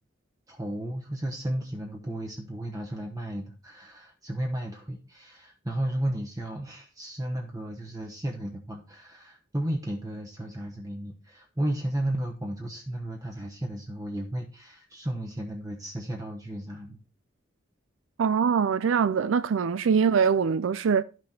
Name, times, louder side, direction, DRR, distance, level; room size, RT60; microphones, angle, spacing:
voice 1, 0.5-17.0, right 1 dB, 20° right, 1.0 m, -33 dB
voice 2, 18.2-21.0, right 6 dB, 90° right, 0.4 m, -23 dB
12.0 x 6.2 x 4.3 m
head